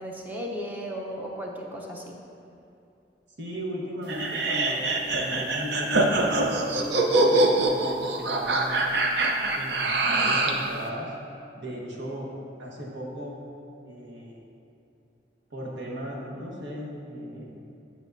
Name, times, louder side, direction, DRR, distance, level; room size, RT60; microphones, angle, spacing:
voice 1, 0.0-2.1, equal, 10° right, -1 dB, 0.7 m, -35 dB
voice 2, 3.4-8.9 9.5-11.2 11.6-13.4 13.8-14.5 15.5-17.7, equal, 85° right, -3 dB, 1.3 m, -36 dB
sound 1, 4.1-10.6, right 2 dB, 70° right, 0.7 m, -24 dB
10.0 x 6.3 x 2.7 m, 2.7 s
head